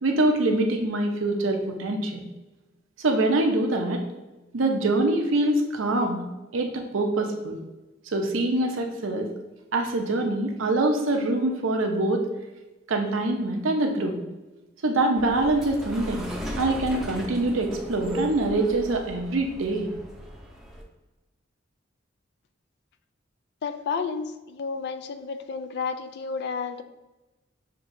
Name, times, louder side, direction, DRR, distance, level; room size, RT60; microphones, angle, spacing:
voice 1, 0.0-2.2 3.0-4.0 4.5-6.2 6.5-7.6 8.1-9.3 9.7-12.2 12.9-14.2 14.8-16.3 16.6-19.9, right 2 dB, 85° right, 3 dB, 0.7 m, -24 dB
sound 1, 15.2-20.8, equal, ahead, 0.6 m, -37 dB
voice 2, 23.6-26.8, left 5 dB, 60° left, 10 dB, 0.3 m, -31 dB
6.7 x 2.9 x 2.6 m, 1.1 s
head